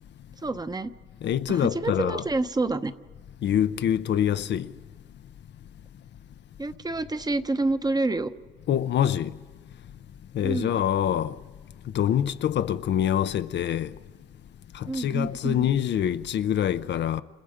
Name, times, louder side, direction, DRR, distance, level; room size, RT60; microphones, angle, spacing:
voice 1, 0.4-0.9 1.5-2.9 6.6-8.3 10.4-10.8 14.9-15.6, right 2 dB, 20° right, 1.0 m, -28 dB
voice 2, 1.2-2.2 3.4-4.7 8.7-9.3 10.3-11.4 11.9-13.9 14.7-17.2, left 10 dB, 60° left, 0.7 m, -25 dB
30.0 x 28.0 x 5.1 m
cardioid pair, 90°, 20 cm